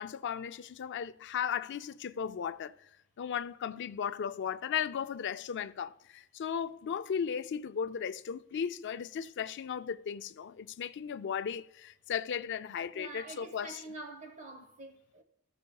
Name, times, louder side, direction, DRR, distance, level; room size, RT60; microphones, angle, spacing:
voice 1, 0.0-2.8 3.2-13.7, left 7 dB, 55° left, 0.4 m, -36 dB
voice 2, 12.9-15.2, right 2 dB, 35° right, 0.9 m, -46 dB
15.0 x 6.8 x 2.3 m
head